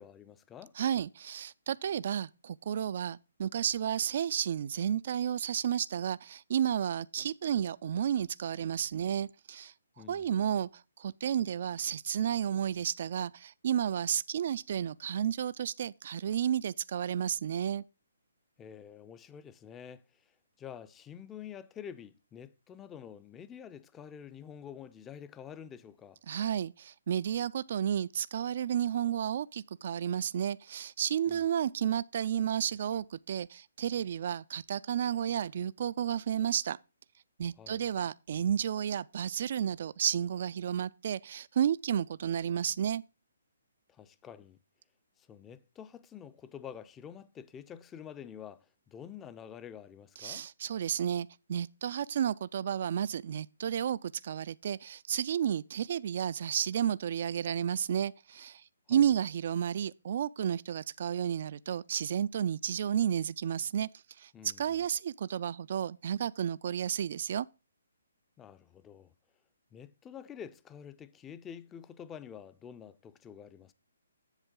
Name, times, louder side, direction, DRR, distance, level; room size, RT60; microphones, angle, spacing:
voice 1, 0.0-0.7 10.0-10.3 18.6-20.2 20.6-26.2 31.3-31.5 37.6-37.8 43.9-44.6 45.2-50.5 58.9-59.1 64.3-64.8 68.4-69.1 69.7-73.7, left 8 dB, 15° left, 0.4 m, -48 dB
voice 2, 0.8-9.7 10.1-17.8 26.3-36.8 37.4-43.0 50.2-63.9 64.2-64.3 64.6-67.5, right 9 dB, 50° right, 0.3 m, -32 dB
8.1 x 6.8 x 3.7 m
hypercardioid pair, 155°, 0 cm